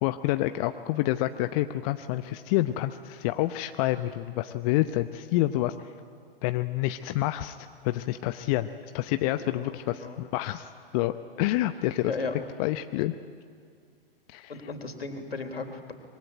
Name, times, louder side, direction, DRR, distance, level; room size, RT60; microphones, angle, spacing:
voice 1, 0.0-5.7 6.4-8.7 8.9-12.1 12.6-13.1 14.3-14.5, left 15 dB, 40° left, 10 dB, 0.8 m, -28 dB
voice 2, 9.4-10.2 12.0-12.3 14.5-15.9, left 4 dB, 80° left, 6 dB, 3.3 m, -36 dB
25.0 x 22.0 x 9.2 m, 2.2 s
figure-of-eight pair, 110°, 30 cm